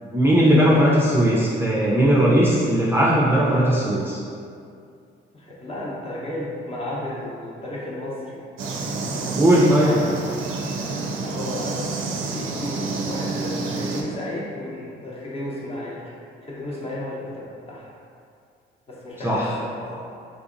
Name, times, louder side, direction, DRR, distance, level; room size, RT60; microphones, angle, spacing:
voice 1, 0.0-4.2 9.4-9.9 19.2-19.5, equal, 10° right, -7 dB, 0.4 m, -18 dB
voice 2, 5.3-8.4 9.0-10.1 11.2-11.9 12.3-16.1 16.4-17.9 18.9-20.0, left 1 dB, 30° left, -5 dB, 0.8 m, -33 dB
sound 1, 8.6-14.0, right 3 dB, 90° right, 0.4 m, -28 dB
3.5 x 2.7 x 2.5 m, 2.4 s
cardioid pair, 90°, 20 cm